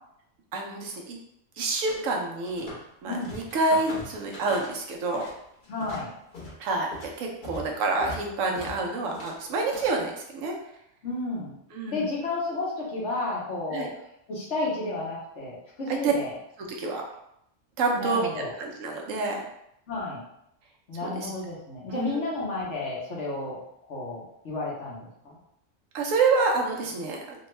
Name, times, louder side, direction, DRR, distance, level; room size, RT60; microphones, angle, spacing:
voice 1, 0.5-1.2 1.6-2.7 3.0-5.3 6.6-6.9 7.2-10.5 11.7-12.1 13.7-13.9 15.9-16.1 16.7-17.0 17.8-18.3 18.6-19.4 21.0-21.3 21.9-22.3 25.9-27.5, right 3 dB, 85° right, 0 dB, 1.1 m, -27 dB
sound 1, 1.9-2.9 3.1-5.4 5.6-10.0, left 1 dB, 45° left, 1.0 m, -41 dB
voice 2, 3.0-3.4 5.7-6.1 11.0-11.6 11.9-13.9 14.3-16.3 17.9-18.5 19.9-20.2 20.9-23.6 23.9-25.4, left 2 dB, 65° left, -5 dB, 1.3 m, -32 dB
3.4 x 2.2 x 3.1 m, 0.77 s
omnidirectional pair, 1.3 m